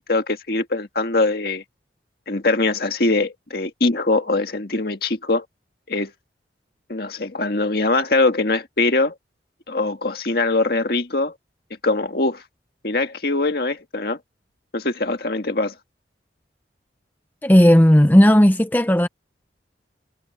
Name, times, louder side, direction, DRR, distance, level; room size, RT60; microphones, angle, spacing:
voice 1, 0.1-1.6 2.3-5.4 5.9-6.1 6.9-9.1 9.7-11.3 11.8-12.4 12.8-14.2 14.7-15.7, left 2 dB, 60° left, 1.7 m, -22 dB
voice 2, 17.4-19.1, equal, 10° left, 0.7 m, -13 dB
head